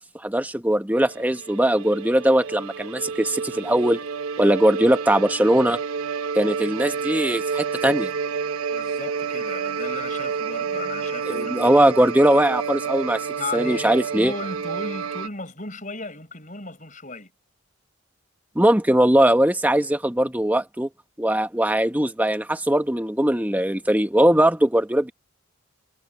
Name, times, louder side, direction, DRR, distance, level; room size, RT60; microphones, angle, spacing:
voice 1, 0.2-4.0 4.4-5.8 6.3-8.1 11.3-13.3 13.5-14.3 18.5-20.9 21.2-25.1, right 1 dB, 5° right, 1.0 m, -20 dB
sound 1, 1.0-15.3, right 6 dB, 85° right, 0.9 m, -29 dB
voice 2, 8.7-11.8 13.4-17.3, left 3 dB, 35° left, 6.1 m, -35 dB
head